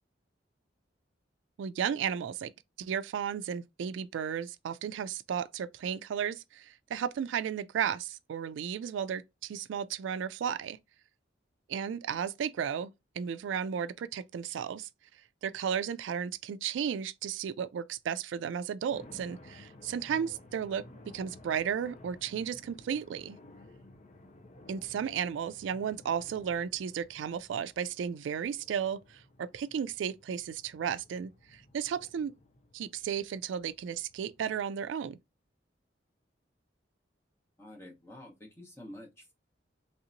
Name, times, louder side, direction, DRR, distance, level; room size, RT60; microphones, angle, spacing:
voice 1, 1.6-2.5 2.8-10.8 11.7-14.9 15.4-20.8 21.1-23.4 24.7-32.3 32.7-35.2, right 8 dB, 85° right, 0.3 m, -34 dB
sound 1, 18.9-34.6, left 1 dB, 40° left, 0.5 m, -55 dB
voice 2, 37.6-39.3, left 1 dB, 15° left, 1.0 m, -49 dB
3.2 x 2.8 x 2.6 m
head